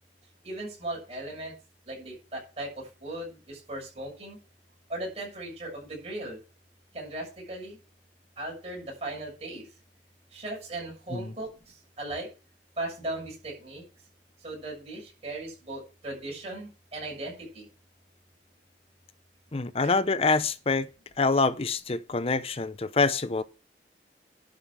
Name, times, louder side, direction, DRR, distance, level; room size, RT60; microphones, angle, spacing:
voice 1, 0.4-1.5 1.9-4.4 4.9-6.4 6.9-7.8 8.4-9.7 10.3-12.3 12.8-13.8 14.4-17.7, right 2 dB, 35° right, 6.8 m, -37 dB
voice 2, 19.5-20.9 21.2-23.4, left 3 dB, 35° left, 0.6 m, -26 dB
11.5 x 5.1 x 7.5 m
head